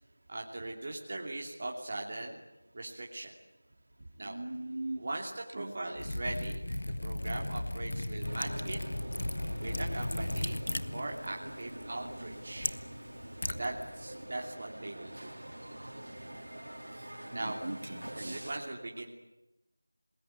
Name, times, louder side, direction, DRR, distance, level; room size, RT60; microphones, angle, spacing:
voice 1, 0.3-2.4 2.7-3.3 4.2-4.4 5.0-8.8 9.6-10.6 10.9-12.8 13.5-15.3 17.3-17.6 18.1-19.1, right 2 dB, 40° right, 0 dB, 2.8 m, -40 dB
voice 2, 4.2-5.0 5.5-5.7 17.3-18.4, right 2 dB, 55° right, 4 dB, 3.4 m, -39 dB
Liquid, 6.0-14.2, left 1 dB, 65° left, 1.6 m, -37 dB
sound 1, 8.2-18.5, right 1 dB, 80° right, 4.3 m, -45 dB
27.5 x 20.5 x 9.0 m, 0.92 s
figure-of-eight pair, 170°, 0 cm